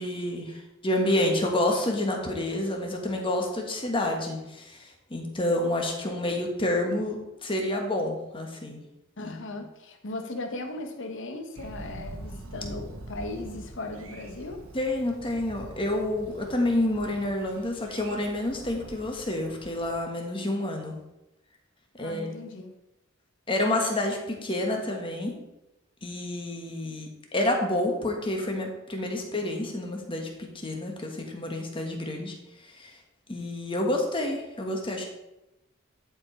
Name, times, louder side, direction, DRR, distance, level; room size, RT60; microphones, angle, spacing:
voice 1, 0.0-8.8 9.2-9.4 14.7-20.9 21.9-22.3 23.5-25.4 26.0-32.3 32.7-33.0 33.3-35.0, left 1 dB, 25° left, 2 dB, 1.4 m, -29 dB
voice 2, 9.2-14.6 22.0-22.7, left 2 dB, 65° left, 4 dB, 1.1 m, -37 dB
Thunder, 11.6-20.0, right 1 dB, 80° right, 1.1 m, -44 dB
10.5 x 4.9 x 4.5 m, 0.94 s
head